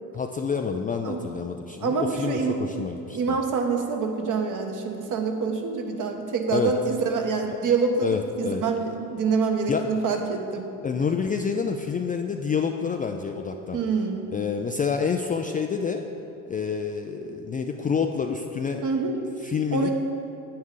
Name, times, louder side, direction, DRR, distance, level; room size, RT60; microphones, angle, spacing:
voice 1, 0.1-3.4 6.5-6.7 7.5-7.6 8.0-8.6 9.7-9.9 10.8-13.8 14.3-16.0 16.5-18.8 19.4-19.9, left 6 dB, 20° left, 4 dB, 0.4 m, -28 dB
voice 2, 1.8-2.6 3.1-10.7 13.7-14.3 18.8-19.2 19.7-19.9, right 4 dB, 45° right, 4 dB, 1.3 m, -26 dB
9.5 x 8.9 x 3.8 m, 2.8 s
hypercardioid pair, 80°, 45 cm